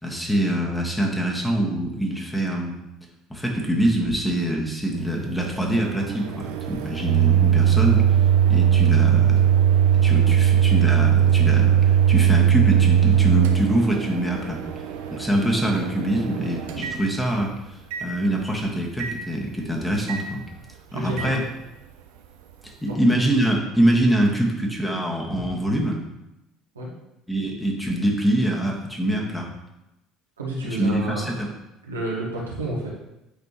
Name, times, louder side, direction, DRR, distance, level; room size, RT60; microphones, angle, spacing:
voice 1, 0.0-2.8 3.3-8.0 8.5-9.5 10.0-14.6 15.1-20.4 20.9-21.4 22.6-26.0 27.3-29.5 30.8-31.5, right 1 dB, 5° left, -1 dB, 1.7 m, -24 dB
Microwave oven, 4.9-17.5 17.9-18.1 19.0-19.2 20.1-20.2 21.2-21.3, right 9 dB, 70° right, 0.6 m, -20 dB
voice 2, 20.9-21.4 22.9-23.0 26.7-26.9 30.4-31.4 31.8-32.9, right 1 dB, 85° right, -4 dB, 1.6 m, -30 dB
8.5 x 5.3 x 3.2 m, 0.91 s
figure-of-eight pair, 60°, 0 cm